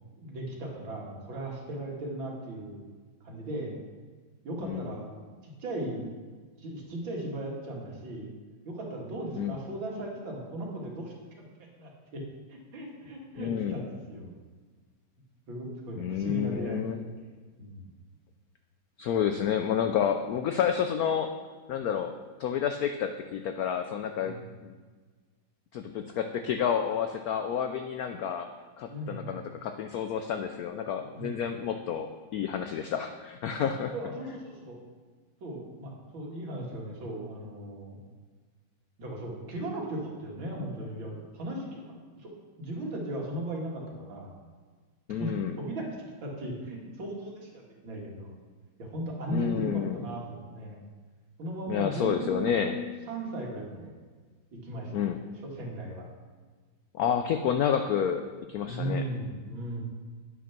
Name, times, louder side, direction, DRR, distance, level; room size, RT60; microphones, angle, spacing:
voice 1, 0.2-2.8 3.2-3.8 4.4-5.1 5.4-6.1 6.6-8.3 8.6-11.5 11.7-12.2 12.5-14.4 15.5-16.8 17.6-17.9 24.2-24.5 28.9-29.3 31.1-31.4 33.6-34.8 35.4-38.0 39.0-41.8 42.2-42.3 42.6-44.3 45.2-45.3 45.6-45.8 46.2-47.5 47.8-48.3 48.8-50.8 51.4-52.7 53.1-53.9 54.5-55.1 55.4-56.0 58.6-59.8, right 1 dB, 75° right, -2 dB, 2.6 m, -37 dB
voice 2, 4.6-4.9 9.4-9.6 13.4-13.8 16.0-17.0 19.0-21.3 21.7-22.1 22.4-24.4 24.6-24.7 25.7-28.5 28.8-33.9 45.1-45.6 49.3-50.0 51.7-52.8 54.9-55.2 56.9-59.0, left 8 dB, 85° left, 7 dB, 0.8 m, -30 dB
9.7 x 6.1 x 5.9 m, 1.4 s
omnidirectional pair, 2.2 m